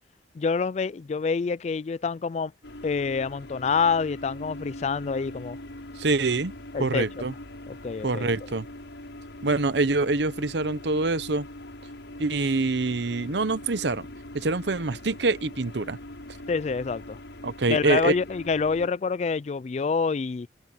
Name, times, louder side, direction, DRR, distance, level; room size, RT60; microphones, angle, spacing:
voice 1, 0.3-2.5 2.8-5.6 6.7-7.1 7.7-8.3 16.5-17.2 17.7-20.5, left 5 dB, 35° left, 0.3 m, -27 dB
sound 1, 2.6-18.9, left 1 dB, 80° left, 7.1 m, -42 dB
voice 2, 6.0-6.5 6.8-7.3 8.0-8.7 9.4-11.5 12.2-14.1 14.3-16.0 17.4-18.1, right 3 dB, 70° right, 0.8 m, -25 dB
head